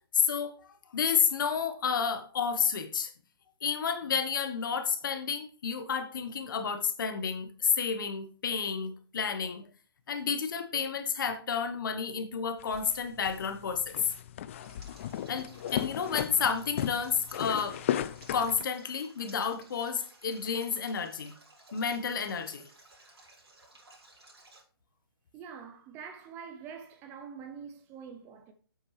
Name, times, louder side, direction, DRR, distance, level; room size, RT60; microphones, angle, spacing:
voice 1, 0.1-3.1 3.6-9.6 10.1-13.9 15.3-17.8 18.3-21.3 21.7-22.6, left 6 dB, 50° left, 1.4 m, -31 dB
sound 1, 12.6-18.6, left 11 dB, 30° left, 0.4 m, -36 dB
Stream, 14.6-24.6, right 2 dB, 85° right, 5.0 m, -57 dB
voice 2, 25.3-28.5, right 6 dB, 15° right, 0.7 m, -45 dB
8.7 x 7.7 x 3.4 m
hypercardioid pair, 150°, 13 cm